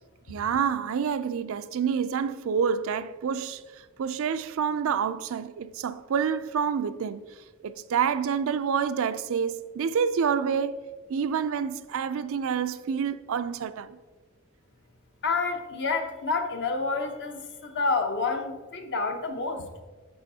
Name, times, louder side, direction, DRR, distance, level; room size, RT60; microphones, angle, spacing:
voice 1, 0.3-7.2 7.6-10.8 11.1-14.0, right 7 dB, 65° right, 0.4 m, -28 dB
voice 2, 15.2-19.7, left 3 dB, 55° left, 0.9 m, -29 dB
10.5 x 6.8 x 2.8 m
head